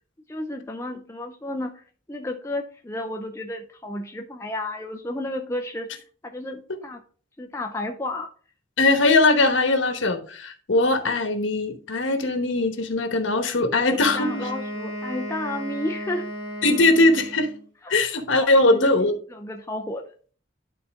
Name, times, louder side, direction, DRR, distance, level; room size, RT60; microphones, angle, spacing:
voice 1, 0.3-5.9 6.2-7.0 7.4-8.3 14.1-16.3 17.8-17.9 18.3-18.9 19.3-20.0, left 1 dB, 15° left, 0.5 m, -32 dB
voice 2, 8.8-14.3 16.6-17.5 17.9-19.2, left 2 dB, 75° left, 1.1 m, -20 dB
Wind instrument woodwind instrument, 13.9-17.6, equal, 50° right, 3.9 m, -34 dB
11.5 x 4.1 x 3.5 m
head